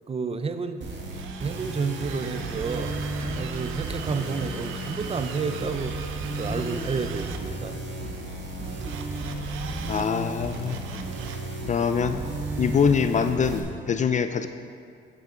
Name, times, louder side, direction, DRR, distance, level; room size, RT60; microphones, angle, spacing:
voice 1, 0.1-0.8 1.4-3.0 3.4-6.0 6.3-7.8, right 5 dB, 30° right, 9 dB, 0.6 m, -30 dB
sound 1, 0.8-13.6, right 2 dB, 65° right, 1.7 m, -33 dB
Drill, 1.1-7.4 8.8-10.1 10.4-11.5, right 6 dB, 90° right, 0.7 m, -41 dB
voice 2, 9.9-11.0 11.7-12.2 12.6-14.5, left 6 dB, 40° left, 10 dB, 0.4 m, -24 dB
9.5 x 9.2 x 3.9 m, 2.4 s
cardioid pair, 90°, 20 cm